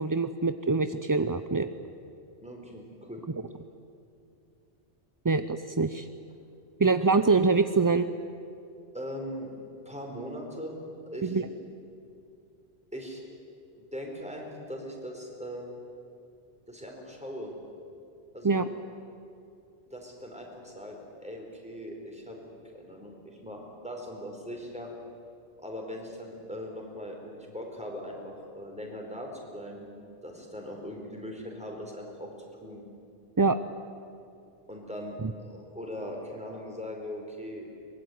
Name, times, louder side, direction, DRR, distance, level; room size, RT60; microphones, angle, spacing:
voice 1, 0.0-1.7 5.2-6.1 6.8-8.1 11.2-11.5 18.4-18.7 33.4-33.6 35.2-35.3, right 4 dB, 25° right, 10 dB, 0.4 m, -24 dB
voice 2, 2.4-3.2 8.9-9.5 9.8-10.8 11.1-11.6 12.9-13.2 13.9-15.7 16.7-17.5 18.3-18.6 19.9-22.4 22.7-24.9 25.6-30.0 30.2-32.3 32.6-32.8 34.7-37.7, equal, 5° right, 0 dB, 4.6 m, -40 dB
23.5 x 21.0 x 9.4 m, 2.6 s
omnidirectional pair, 1.1 m